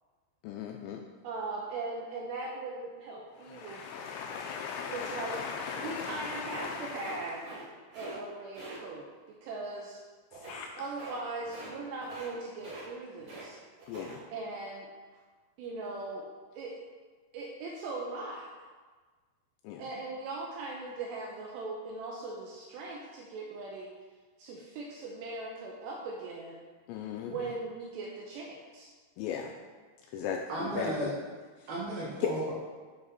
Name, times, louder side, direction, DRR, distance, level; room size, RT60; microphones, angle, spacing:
voice 1, 0.4-1.0 3.5-7.2 10.4-10.7 13.9-14.2 19.6-19.8 26.9-27.5 29.2-29.5 30.1-31.1 32.2-32.3, left 7 dB, 85° left, 3 dB, 2.6 m, -37 dB
voice 2, 1.2-3.8 4.9-5.4 5.8-7.4 7.9-10.0 10.8-13.6 14.3-14.9 15.6-16.3 16.5-16.8 17.3-18.5 19.8-23.9 24.4-26.6 27.3-28.9, right 3 dB, 85° right, -1 dB, 2.6 m, -39 dB
sound 1, 6.4-7.6 7.9-8.2 8.5-8.8 10.3-10.6 10.9-11.2 11.4-11.7 12.0-12.3 12.6-13.5 13.8-14.2, right 2 dB, 45° right, 1.8 m, -45 dB
voice 3, 30.5-31.1 31.7-32.5, right 1 dB, 65° right, -5 dB, 2.8 m, -34 dB
9.5 x 5.0 x 4.0 m, 1.4 s
omnidirectional pair, 5.6 m